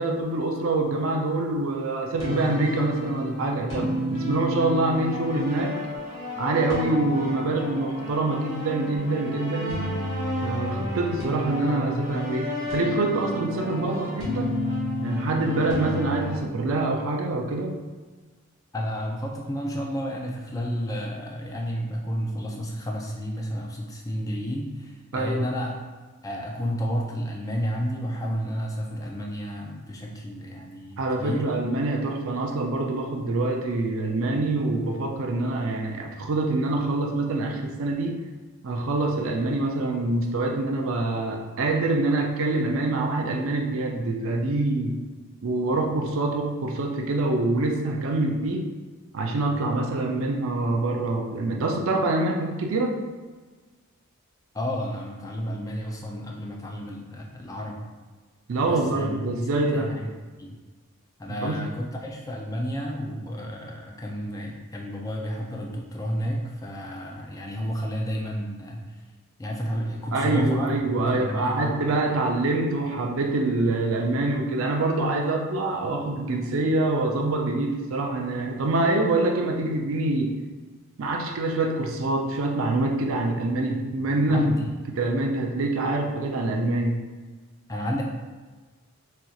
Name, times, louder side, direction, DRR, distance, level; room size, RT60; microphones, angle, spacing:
voice 1, 0.0-5.7 6.4-9.8 10.4-14.5 15.0-17.7 25.1-25.4 31.0-38.2 38.6-45.0 45.4-48.7 49.1-52.9 58.5-59.9 61.4-61.6 70.1-80.3 81.0-84.5 85.0-87.0, right 2 dB, 65° right, 2 dB, 0.4 m, -25 dB
sound 1, 2.2-16.4, equal, 60° left, 1.3 m, -31 dB
voice 2, 18.7-25.8 26.2-31.5 54.5-57.9 58.6-60.1 60.4-60.6 61.2-68.8 69.4-71.9 84.3-84.7 87.7-88.0, equal, 15° left, -1 dB, 0.4 m, -31 dB
4.3 x 2.6 x 2.3 m, 1.4 s
head